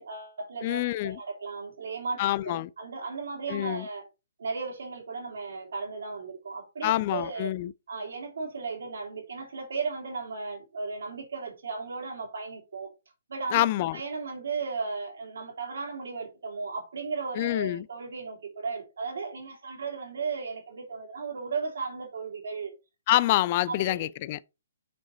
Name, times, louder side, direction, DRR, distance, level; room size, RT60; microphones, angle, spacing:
voice 1, 0.0-4.1 4.4-7.5 7.9-12.9 13.3-13.7 13.9-22.7 23.7-24.1, right 4 dB, 75° right, 3.1 m, -35 dB
voice 2, 0.6-1.2 2.2-2.7 3.5-3.9 6.8-7.7 13.5-14.0 17.4-17.9 23.1-24.4, left 15 dB, 40° left, 0.4 m, -26 dB
6.9 x 4.9 x 4.2 m
hypercardioid pair, 145°, 0 cm